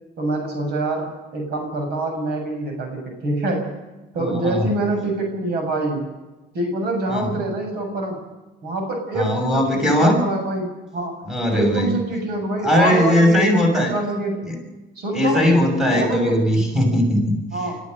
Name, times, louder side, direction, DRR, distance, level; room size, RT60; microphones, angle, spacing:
voice 1, 0.2-3.7 4.1-6.0 6.5-8.2 8.6-11.1 11.5-14.5 15.0-15.5 15.8-16.4 17.5-17.8, right 2 dB, 70° right, 3 dB, 7.4 m, -25 dB
voice 2, 4.2-4.7 7.1-7.4 9.1-10.2 11.2-11.9 12.6-13.9 14.5-14.6 15.1-17.4, left 1 dB, 5° right, 2 dB, 6.7 m, -19 dB
29.5 x 14.5 x 6.8 m, 1.1 s
cardioid pair, 110°, 17 cm